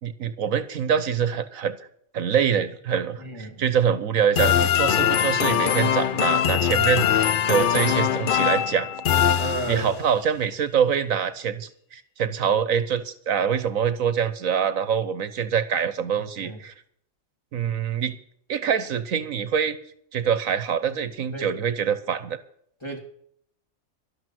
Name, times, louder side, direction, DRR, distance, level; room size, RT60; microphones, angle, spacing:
voice 1, 0.0-1.8 2.1-8.9 9.7-16.7 17.5-18.2 18.5-19.8 20.1-22.4, right 8 dB, 80° right, 13 dB, 1.4 m, -25 dB
voice 2, 3.2-3.6 9.4-9.9 16.4-16.6 21.3-21.5 22.8-23.0, right 2 dB, 20° left, 1 dB, 3.2 m, -33 dB
sound 1, 4.4-10.1, left 9 dB, 55° left, 0.6 m, -22 dB
12.5 x 12.0 x 6.2 m, 0.66 s
omnidirectional pair, 1.4 m